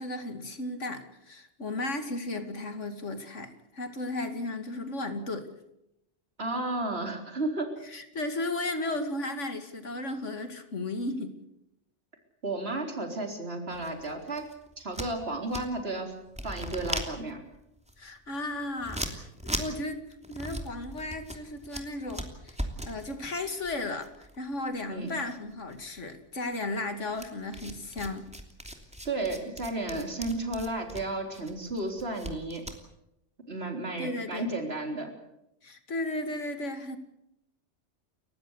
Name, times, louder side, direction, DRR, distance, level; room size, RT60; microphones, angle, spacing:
voice 1, 0.0-5.5 7.8-11.4 18.0-19.3 19.5-22.6 22.8-28.3 34.0-34.5 35.6-37.0, left 2 dB, 90° left, 8 dB, 2.8 m, -35 dB
voice 2, 6.4-7.7 12.4-14.5 14.8-16.1 16.4-17.4 24.9-25.1 29.0-32.6 33.5-35.1, right 2 dB, 60° right, 4 dB, 4.3 m, -33 dB
sound 1, 13.7-16.0 16.3-25.0 25.3-26.1 27.1-32.8, equal, 5° right, 2.9 m, -39 dB
30.0 x 15.5 x 8.2 m, 0.83 s
omnidirectional pair, 1.2 m